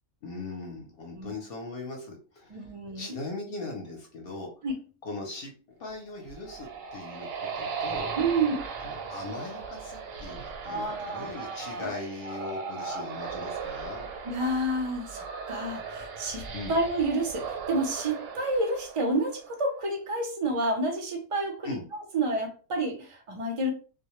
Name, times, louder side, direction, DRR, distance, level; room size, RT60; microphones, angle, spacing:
voice 1, 0.2-2.6 2.9-4.5 5.0-5.5 5.8-8.1 8.8-14.1 16.5-16.8 21.6-21.8, left 2 dB, 55° left, 0 dB, 0.7 m, -39 dB
voice 2, 2.5-3.2 4.6-4.8 8.2-8.7 10.6-13.1 14.2-23.7, right 2 dB, 45° right, 2 dB, 0.4 m, -30 dB
sound 1, 6.1-19.6, right 6 dB, 90° right, 1.0 m, -38 dB
2.1 x 2.1 x 2.9 m, 0.36 s
omnidirectional pair, 1.3 m